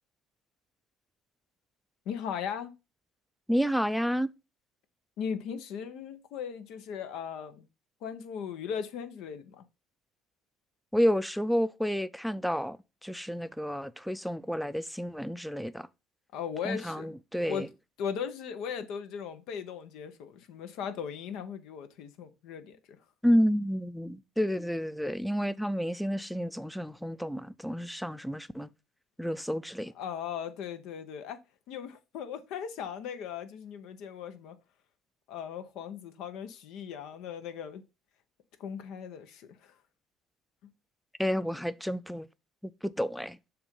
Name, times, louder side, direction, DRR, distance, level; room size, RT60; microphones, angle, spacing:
voice 1, 2.1-2.7 5.2-7.7 8.0-9.7 16.3-17.2 17.5-17.7 18.0-23.0 29.9-31.4 31.7-34.6 35.3-37.8 38.6-39.8 40.6-40.7, left 7 dB, 75° left, 0.8 m, -38 dB
voice 2, 3.5-4.3 10.9-12.8 13.0-15.9 16.6-17.7 23.2-28.7 29.2-29.9 41.2-42.3 42.8-43.4, equal, ahead, 0.4 m, -30 dB
6.9 x 2.6 x 5.3 m
supercardioid pair, 80°, 0 cm